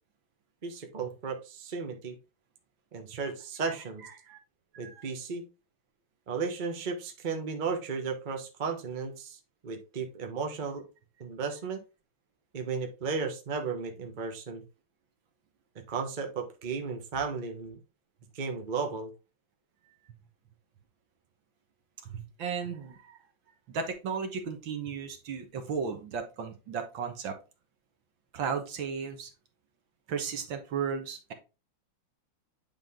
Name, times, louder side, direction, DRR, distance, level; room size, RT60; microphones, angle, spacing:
voice 1, 0.6-2.2 2.9-4.0 4.8-5.4 6.3-10.8 11.2-11.8 12.5-14.6 15.9-17.8 18.3-19.1, right 5 dB, 30° right, 3 dB, 1.0 m, -34 dB
voice 2, 4.0-4.4 4.8-5.1 22.0-23.2 23.7-27.3 28.3-29.3 30.1-31.3, right 6 dB, 70° right, 5 dB, 1.9 m, -35 dB
9.0 x 3.8 x 3.6 m, 0.30 s
omnidirectional pair, 2.2 m